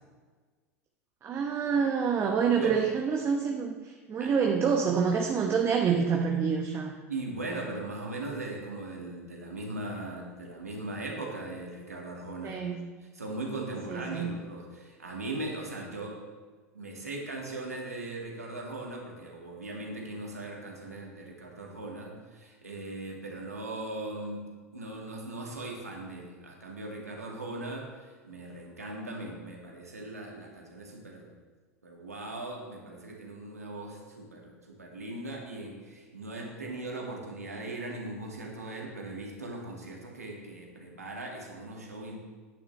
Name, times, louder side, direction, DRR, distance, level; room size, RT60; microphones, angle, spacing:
voice 1, 1.2-6.9 12.4-12.9 13.9-14.3, right 6 dB, 30° right, 1 dB, 1.0 m, -27 dB
voice 2, 7.1-12.6 13.1-16.2 16.7-31.4 31.8-42.2, right 2 dB, 90° right, -1 dB, 1.9 m, -39 dB
9.9 x 9.3 x 3.3 m, 1.4 s
figure-of-eight pair, 85°, 8 cm